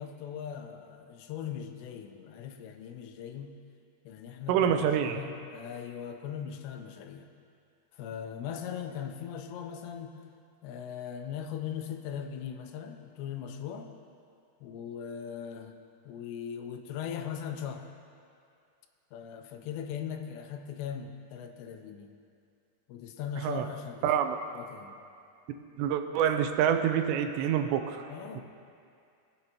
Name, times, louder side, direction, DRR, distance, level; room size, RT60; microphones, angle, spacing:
voice 1, 0.0-3.5 4.1-7.3 8.0-10.2 10.6-14.0 14.6-15.7 16.1-17.9 19.1-22.1 22.9-24.1 24.5-25.0 28.1-28.4, left 8 dB, 90° left, 5 dB, 2.8 m, -39 dB
voice 2, 4.5-5.2 23.4-23.7 24.0-24.4 25.8-28.1, right 9 dB, 90° right, 7 dB, 2.8 m, -27 dB
20.0 x 7.9 x 2.9 m, 2.4 s
omnidirectional pair, 4.9 m